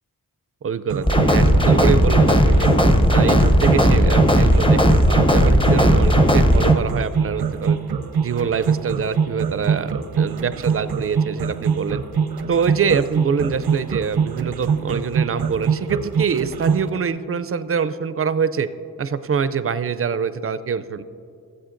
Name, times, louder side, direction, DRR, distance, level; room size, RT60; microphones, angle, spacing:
voice 1, 0.6-2.7 3.1-7.8 8.2-12.0 12.5-18.7 19.0-21.0, right 6 dB, 40° right, 14 dB, 0.4 m, -24 dB
sound 1, 0.9-16.9, right 6 dB, 90° right, 0.7 m, -23 dB
sound 2, 1.1-6.7, equal, 15° left, 0.6 m, -16 dB
16.0 x 7.8 x 2.5 m, 2.4 s
wide cardioid pair, 75°, 37 cm